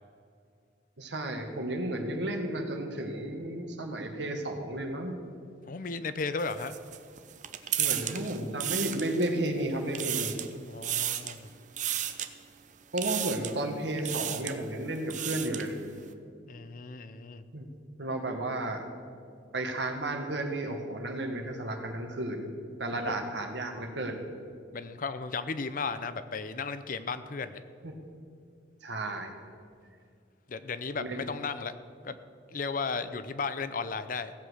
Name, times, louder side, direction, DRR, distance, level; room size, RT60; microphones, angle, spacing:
voice 1, 1.0-5.2 7.8-10.4 12.9-15.8 17.5-17.7 18.0-18.8 19.5-22.5 22.8-24.2 27.8-27.9 28.8-29.3 31.0-31.2, right 1 dB, 70° right, 4 dB, 1.7 m, -33 dB
voice 2, 5.7-6.8 10.7-11.5 16.5-17.4 23.0-23.2 24.7-27.6 30.5-31.7 32.0-32.2 32.5-34.3, left 4 dB, 45° left, 12 dB, 0.6 m, -35 dB
sound 1, 6.4-9.5 9.8-10.5 10.8-11.4 11.8-12.3 13.0-13.6 14.0-14.6 14.9-15.7, right 11 dB, 40° right, 0.7 m, -33 dB
16.5 x 7.7 x 6.3 m, 2.3 s
head